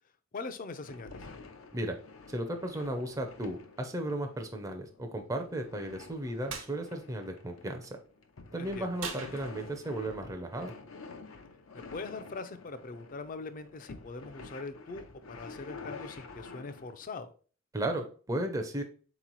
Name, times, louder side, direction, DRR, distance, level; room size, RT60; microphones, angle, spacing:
voice 1, 0.3-1.2 8.6-8.9 11.9-17.3, left 3 dB, 40° left, 10 dB, 0.4 m, -42 dB
sound 1, 0.7-17.0, left 4 dB, 90° left, 0.7 m, -49 dB
voice 2, 2.3-8.0 8.5-10.7 17.7-18.8, right 1 dB, 15° right, 4 dB, 0.5 m, -35 dB
sound 2, 6.5-6.7 9.0-9.9, right 5 dB, 70° right, 0.7 m, -40 dB
4.1 x 3.0 x 3.9 m, 0.40 s
head